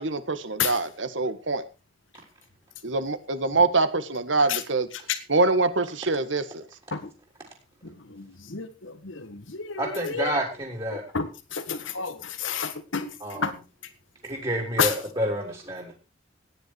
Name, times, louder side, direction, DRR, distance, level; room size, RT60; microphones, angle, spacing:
voice 1, 0.0-1.6 2.8-4.9 5.3-6.6, right 3 dB, 75° right, 12 dB, 1.7 m, -24 dB
voice 2, 7.8-10.3 10.9-13.5 14.8-15.0, left 6 dB, 80° left, 10 dB, 1.6 m, -30 dB
voice 3, 9.8-11.0 13.2-13.5 14.2-15.9, equal, 25° right, -1 dB, 3.7 m, -29 dB
16.5 x 10.0 x 4.7 m, 0.31 s
head